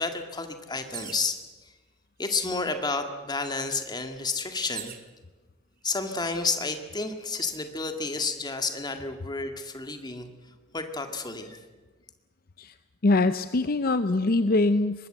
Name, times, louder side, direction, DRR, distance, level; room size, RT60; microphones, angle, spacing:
voice 1, 0.0-1.7 2.2-4.9 5.8-10.3 10.7-11.6, left 3 dB, 20° left, 6 dB, 2.0 m, -31 dB
sound 1, 0.9-1.4 2.3-2.4 2.7-5.1 5.9-6.4, right 10 dB, 50° right, 1.9 m, -43 dB
voice 2, 13.0-15.1, left 2 dB, 50° left, 11 dB, 0.7 m, -23 dB
23.5 x 20.0 x 8.0 m, 1.3 s
head